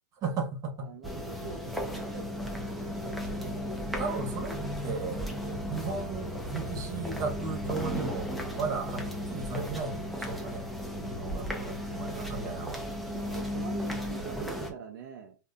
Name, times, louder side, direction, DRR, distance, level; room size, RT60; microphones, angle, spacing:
voice 1, 0.2-0.9 4.0-4.6 4.8-5.3 5.7-12.8, right 4 dB, 35° right, 1.0 m, -35 dB
voice 2, 0.8-2.4 2.7-3.2 5.4-5.7 8.6-8.8 13.1-15.4, right 6 dB, 65° right, 0.5 m, -44 dB
sound 1, 1.0-14.7, equal, ahead, 0.6 m, -35 dB
2.6 x 2.4 x 2.3 m
hypercardioid pair, 115°, 11 cm